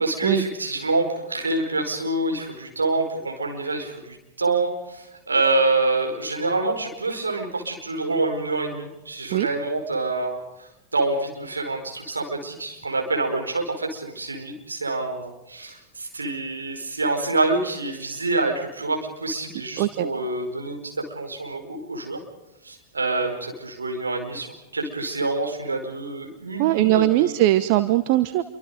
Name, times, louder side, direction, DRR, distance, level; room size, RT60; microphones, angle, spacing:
voice 1, 0.0-22.2 22.6-27.3, right 2 dB, 75° right, 3 dB, 5.0 m, -26 dB
voice 2, 26.6-28.4, right 15 dB, 45° right, 11 dB, 1.1 m, -20 dB
28.0 x 24.5 x 5.2 m, 0.96 s
figure-of-eight pair, 90°, 0 cm